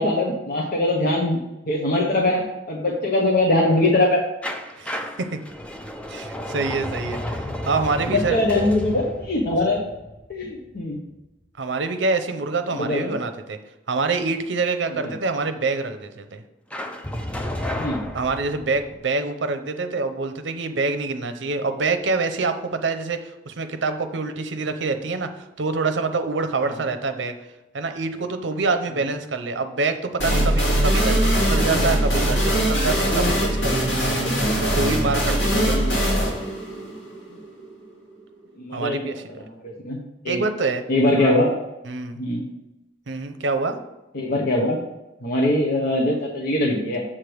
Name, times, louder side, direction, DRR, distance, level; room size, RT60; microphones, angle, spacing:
voice 1, 0.0-1.4 1.7-4.2 8.1-9.8 10.3-11.0 12.7-13.2 15.0-15.1 17.8-18.0 31.8-31.9 34.2-34.6 35.4-36.0 38.6-39.1 39.6-40.0 40.2-40.4 40.9-41.5 42.2-42.5 44.1-44.8 45.2-47.0, left 1 dB, 55° left, -2 dB, 0.9 m, -22 dB
sound 1, 4.4-11.2 16.7-18.9, left 1 dB, 5° left, 0.5 m, -32 dB
voice 2, 4.8-5.4 6.1-8.5 11.6-13.6 13.9-16.4 18.1-27.3 27.7-34.1 34.6-35.7 38.7-39.5 40.3-40.8 41.2-41.4 41.9-42.2 43.1-43.8, right 3 dB, 70° right, 7 dB, 0.7 m, -26 dB
sound 2, 30.2-37.7, equal, 85° left, 2.3 m, -21 dB
7.4 x 3.4 x 6.1 m, 0.97 s
head